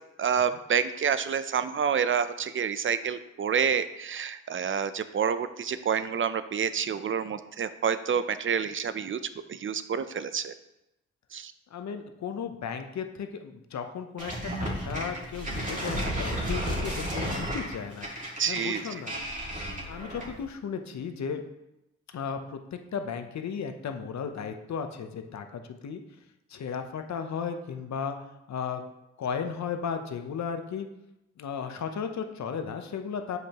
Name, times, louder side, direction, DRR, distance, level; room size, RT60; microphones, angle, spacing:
voice 1, 0.2-9.2 9.5-10.5 11.3-11.5 18.4-18.8, right 7 dB, 45° right, 13 dB, 0.5 m, -28 dB
voice 2, 11.7-19.1 19.9-21.4 22.1-26.0 26.5-28.2 28.5-28.8 29.2-30.9 31.4-33.4, left 6 dB, 70° left, 7 dB, 0.8 m, -35 dB
sound 1, 14.2-20.4, equal, 25° right, 2.2 m, -33 dB
7.7 x 5.2 x 2.9 m, 0.89 s
cardioid pair, 50°, 29 cm